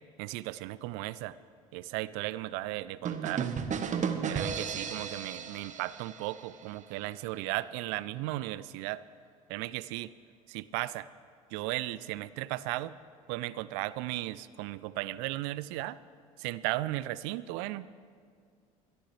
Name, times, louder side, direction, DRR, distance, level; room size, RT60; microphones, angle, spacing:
voice 1, 0.2-1.4 1.7-3.5 4.3-9.0 9.5-10.1 10.5-11.1 11.5-12.9 13.3-16.0 16.4-17.9, right 17 dB, 65° right, 18 dB, 0.5 m, -35 dB
sound 1, 3.0-6.8, right 7 dB, 40° right, 1.1 m, -34 dB
22.5 x 13.5 x 3.3 m, 2.1 s
hypercardioid pair, 65°, 19 cm